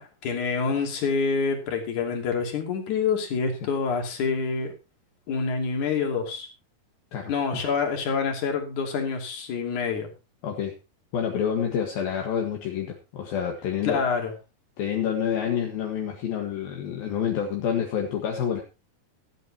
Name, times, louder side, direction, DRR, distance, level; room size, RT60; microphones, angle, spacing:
voice 1, 0.0-4.7 5.3-6.5 7.3-10.1 13.8-14.3, left 5 dB, 50° left, 3 dB, 4.0 m, -27 dB
voice 2, 7.1-7.6 10.4-10.7 11.1-14.0 14.8-18.6, left 8 dB, 70° left, 1 dB, 3.4 m, -28 dB
16.5 x 12.5 x 2.9 m, 0.28 s
omnidirectional pair, 4.5 m